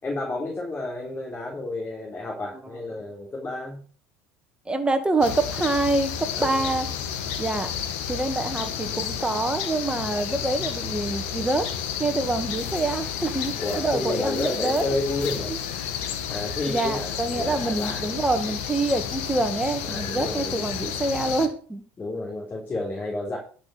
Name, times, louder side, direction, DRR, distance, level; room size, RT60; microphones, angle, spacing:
voice 1, 0.0-3.8 6.4-6.7 13.6-15.6 16.3-18.2 19.8-20.8 22.0-23.4, left 2 dB, 30° left, -2 dB, 3.8 m, -31 dB
voice 2, 4.7-6.9 7.4-7.7 8.1-11.6 12.0-14.8 15.5-15.6 16.7-21.8, right 2 dB, 15° right, 7 dB, 2.1 m, -26 dB
sound 1, 5.2-21.5, left 8 dB, 80° left, 1.7 m, -31 dB
11.5 x 6.2 x 6.3 m, 0.41 s
supercardioid pair, 90°, 7 cm